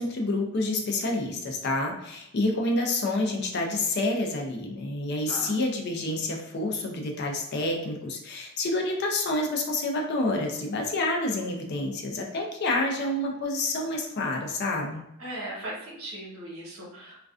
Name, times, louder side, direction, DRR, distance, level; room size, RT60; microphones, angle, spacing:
voice 1, 0.0-15.0, left 2 dB, 50° left, 1 dB, 0.4 m, -28 dB
voice 2, 15.2-17.2, right 1 dB, 70° right, -5 dB, 1.0 m, -38 dB
2.4 x 2.2 x 2.3 m, 0.81 s
head